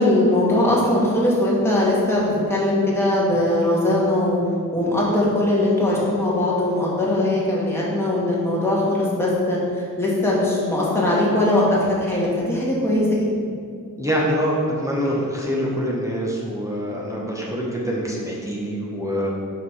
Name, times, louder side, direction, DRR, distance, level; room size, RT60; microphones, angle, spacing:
voice 1, 0.0-4.4 4.7-13.3, left 1 dB, 5° left, -6 dB, 1.6 m, -20 dB
voice 2, 14.0-19.3, equal, 10° right, -4 dB, 0.9 m, -25 dB
5.8 x 4.7 x 5.5 m, 2.2 s
wide cardioid pair, 155°, 35 cm